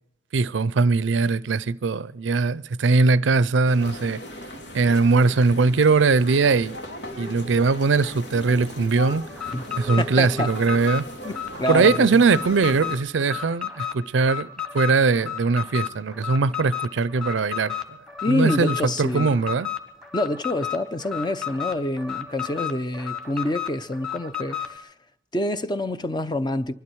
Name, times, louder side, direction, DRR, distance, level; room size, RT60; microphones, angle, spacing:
voice 1, 0.3-4.2 4.7-6.8 7.2-9.2 9.8-11.1 11.7-17.7 18.3-19.7, right 4 dB, 90° right, 0.5 m, -21 dB
sound 1, 3.6-12.9, equal, 85° left, 2.5 m, -38 dB
Alarm, 9.3-24.8, left 10 dB, ahead, 1.4 m, -32 dB
voice 2, 10.0-10.5 11.2-12.2 18.2-19.3 20.1-24.9 25.3-26.7, left 1 dB, 25° left, 0.7 m, -27 dB
24.5 x 12.0 x 4.6 m
head